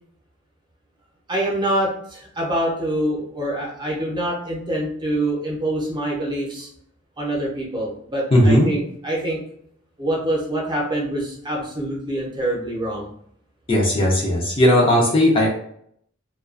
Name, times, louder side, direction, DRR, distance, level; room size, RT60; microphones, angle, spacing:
voice 1, 1.3-6.7 7.2-9.4 10.0-13.1, right 1 dB, 20° right, -4 dB, 0.7 m, -25 dB
voice 2, 8.3-8.7 13.7-15.5, left 1 dB, 25° left, -3 dB, 0.5 m, -16 dB
2.3 x 2.3 x 2.4 m, 0.67 s
head